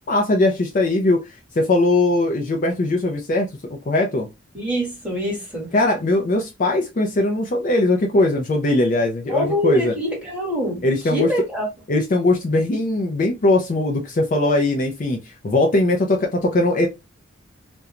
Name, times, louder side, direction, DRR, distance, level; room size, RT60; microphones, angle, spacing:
voice 1, 0.1-1.2 1.5-4.3 5.7-9.9 10.8-11.3 11.9-16.9, left 2 dB, 40° left, 0.4 m, -20 dB
voice 2, 4.5-5.7 9.3-11.7, left 1 dB, 5° right, 1.2 m, -24 dB
2.4 x 2.2 x 2.8 m
head